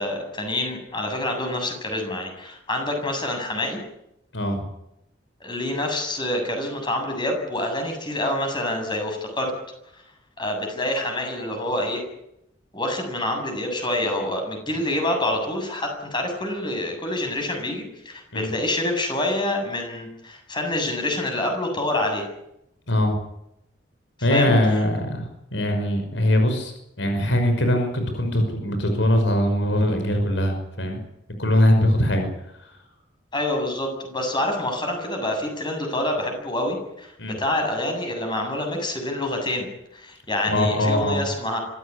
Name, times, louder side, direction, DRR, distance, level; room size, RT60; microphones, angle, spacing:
voice 1, 0.0-3.8 5.4-9.5 10.4-12.0 12.7-22.3 24.3-24.5 33.3-41.6, left 1 dB, 25° left, 4 dB, 7.7 m, -27 dB
voice 2, 22.9-23.2 24.2-31.0 31.4-32.3 37.2-37.4 40.5-41.2, left 1 dB, 80° left, 5 dB, 5.7 m, -21 dB
25.5 x 15.5 x 9.8 m, 0.80 s
head